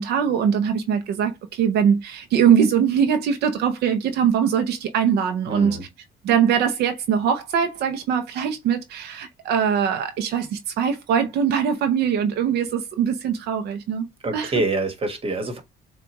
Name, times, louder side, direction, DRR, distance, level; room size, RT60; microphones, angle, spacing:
voice 1, 0.0-5.8 6.2-14.1 14.3-14.5, right 8 dB, 75° right, 0.7 m, -22 dB
voice 2, 5.5-5.8 14.2-15.6, right 2 dB, 35° right, 1.4 m, -26 dB
7.1 x 2.4 x 2.9 m
cardioid pair, 110°, 17 cm